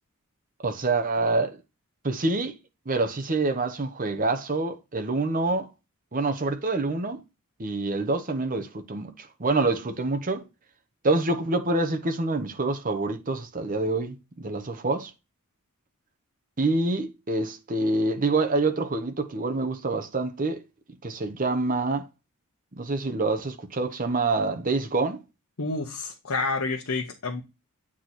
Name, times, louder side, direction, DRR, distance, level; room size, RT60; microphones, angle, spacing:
voice 1, 0.6-1.6 2.0-2.6 2.9-5.7 6.1-7.2 7.6-10.4 11.0-15.1 16.6-20.6 21.0-22.1 22.8-25.2, right 3 dB, 40° right, 0.9 m, -26 dB
voice 2, 25.6-27.4, left 3 dB, 70° left, 1.0 m, -29 dB
8.6 x 3.1 x 4.1 m
head